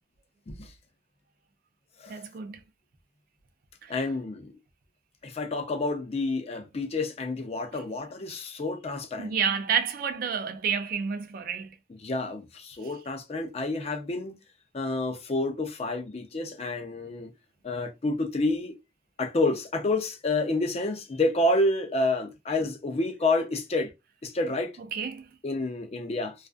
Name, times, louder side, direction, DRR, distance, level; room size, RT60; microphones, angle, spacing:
voice 1, 2.1-2.6 3.8-3.9 9.2-11.7 24.9-25.2, right 7 dB, 55° right, 0.4 m, -29 dB
voice 2, 3.9-4.5 5.2-9.3 12.0-14.3 14.7-17.3 17.6-18.7 19.2-23.9 24.2-24.7 25.4-26.3, left 2 dB, 35° left, 0.5 m, -29 dB
2.4 x 2.3 x 2.3 m
head